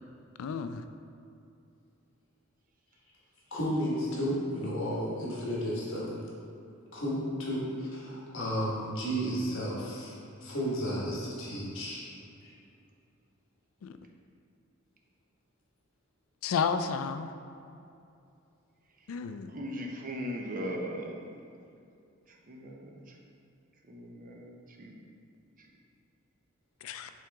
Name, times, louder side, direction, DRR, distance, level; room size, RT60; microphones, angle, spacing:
voice 1, 0.4-0.8 13.8-14.0 16.4-17.3 19.1-19.6 26.8-27.1, left 6 dB, 80° left, 10 dB, 0.3 m, -32 dB
voice 2, 3.5-6.2 6.9-10.1 10.4-12.0 12.4-12.5, equal, 65° left, -5 dB, 1.4 m, -33 dB
voice 3, 19.5-21.1 22.3-23.2 23.9-24.9 25.6-25.7, equal, 40° right, 0 dB, 0.7 m, -39 dB
7.6 x 3.7 x 3.5 m, 2.6 s
head